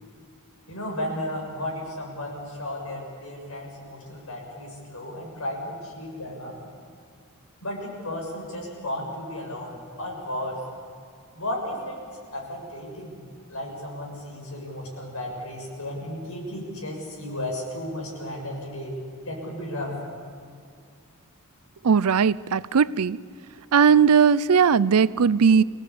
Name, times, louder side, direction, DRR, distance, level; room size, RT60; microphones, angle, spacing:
voice 1, 0.7-6.6 7.6-10.6 11.4-12.0 12.3-13.2 13.5-19.0 19.3-20.0, left 1 dB, 75° left, 7.0 m, -34 dB
voice 2, 21.8-23.2 23.7-25.6, right 6 dB, 85° right, 0.5 m, -18 dB
26.0 x 18.0 x 8.6 m
head